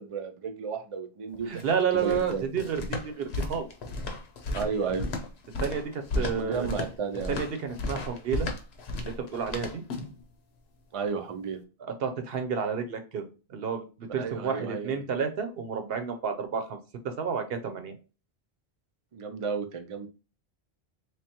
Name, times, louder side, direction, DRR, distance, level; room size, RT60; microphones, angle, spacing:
voice 1, 0.0-1.6 1.9-2.5 4.5-5.1 6.1-7.4 10.9-11.6 14.2-14.9 19.1-20.1, right 5 dB, 45° right, 6 dB, 0.4 m, -32 dB
sound 1, 1.3-10.2, left 2 dB, 80° left, 1.0 m, -34 dB
voice 2, 1.5-3.7 5.6-6.7 7.3-8.5 9.0-9.8 12.0-13.2 13.5-16.8 17.0-17.9, right 6 dB, 70° right, 7 dB, 0.9 m, -30 dB
3.4 x 3.3 x 2.8 m, 0.33 s
omnidirectional pair, 1.1 m